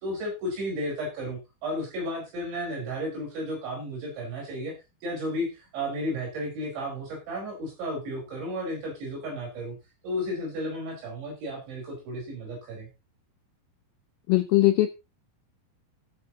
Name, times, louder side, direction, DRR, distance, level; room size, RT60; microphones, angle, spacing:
voice 1, 0.0-4.7 5.0-9.8 10.0-12.9, equal, 80° right, -1 dB, 7.3 m, -33 dB
voice 2, 14.3-14.9, left 16 dB, 80° left, 8 dB, 2.3 m, -20 dB
16.0 x 8.6 x 3.0 m, 0.26 s
omnidirectional pair, 5.1 m